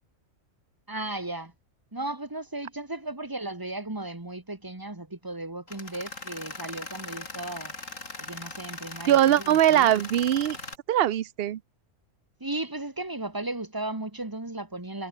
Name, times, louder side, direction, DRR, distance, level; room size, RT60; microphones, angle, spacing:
voice 1, 0.9-1.5 1.9-7.7 8.2-9.9 12.4-15.1, right 2 dB, 15° right, 1.7 m, -35 dB
Tools, 5.7-10.8, left 3 dB, 70° left, 4.1 m, -40 dB
voice 2, 9.1-10.6 10.9-11.6, right 12 dB, 55° right, 0.8 m, -21 dB
omnidirectional pair, 1.4 m